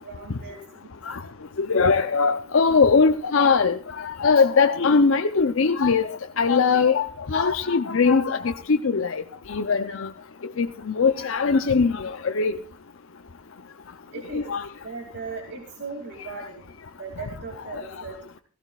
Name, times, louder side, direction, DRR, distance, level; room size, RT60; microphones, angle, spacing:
voice 1, 0.0-1.0 7.4-7.5 14.1-14.5 14.8-16.6 16.9-18.4, right 4 dB, 55° right, 2.6 m, -38 dB
voice 2, 1.7-3.8 4.2-6.1 6.4-8.4 8.7-9.2 9.5-10.1 10.6-10.7 11.0-12.6 14.3-14.6, left 5 dB, 70° left, 0.6 m, -20 dB
17.0 x 16.0 x 2.4 m
head